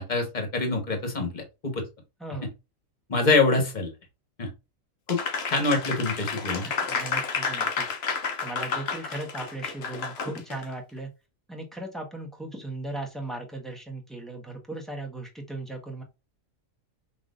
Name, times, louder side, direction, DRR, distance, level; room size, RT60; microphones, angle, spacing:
voice 1, 0.0-1.8 3.1-3.9 4.4-4.5 5.1-5.2 5.5-6.7, left 3 dB, 35° left, 4 dB, 1.5 m, -25 dB
voice 2, 2.2-2.5 6.6-7.9 8.4-11.1 11.5-16.0, right 2 dB, ahead, 0 dB, 1.3 m, -37 dB
Applause, 5.1-10.6, left 5 dB, 55° left, 0.9 m, -31 dB
5.9 x 3.1 x 2.6 m, 0.25 s
omnidirectional pair, 1.4 m